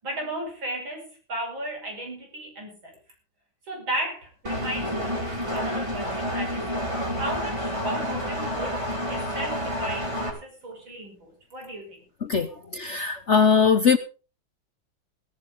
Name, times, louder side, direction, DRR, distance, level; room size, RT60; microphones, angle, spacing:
voice 1, 0.0-3.0 3.6-12.0, right 1 dB, 75° right, 1 dB, 6.7 m, -35 dB
Engine, 4.4-10.3, equal, 15° right, 4.2 m, -29 dB
voice 2, 12.2-14.0, left 6 dB, 45° left, 10 dB, 1.0 m, -21 dB
17.5 x 14.5 x 3.8 m, 0.35 s
omnidirectional pair, 2.1 m